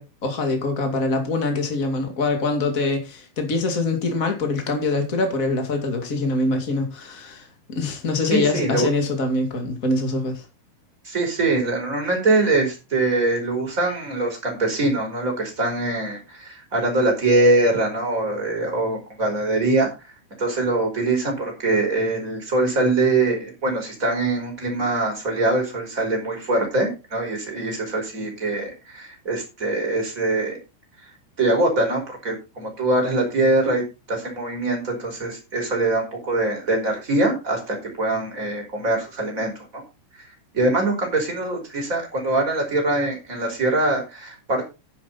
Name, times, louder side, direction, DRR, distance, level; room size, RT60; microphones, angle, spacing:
voice 1, 0.0-10.4, left 3 dB, 70° left, 0.7 m, -24 dB
voice 2, 8.3-8.9 11.0-19.9 20.4-30.6 31.4-33.8 34.1-39.8 40.5-44.7, right 2 dB, 15° right, 4.7 m, -23 dB
10.5 x 10.0 x 4.1 m
omnidirectional pair, 6.0 m